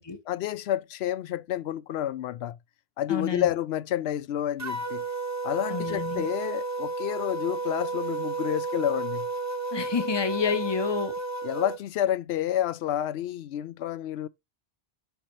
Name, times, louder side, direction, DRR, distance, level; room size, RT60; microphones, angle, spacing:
voice 1, 0.3-2.6 3.0-5.0 5.4-9.3 11.4-14.3, left 11 dB, 70° left, 0.8 m, -29 dB
voice 2, 3.1-3.5 5.7-6.3 9.7-11.1, left 5 dB, 25° left, 1.0 m, -29 dB
sound 1, 4.6-11.8, right 3 dB, 20° right, 0.6 m, -32 dB
7.0 x 5.4 x 3.1 m
omnidirectional pair, 1.2 m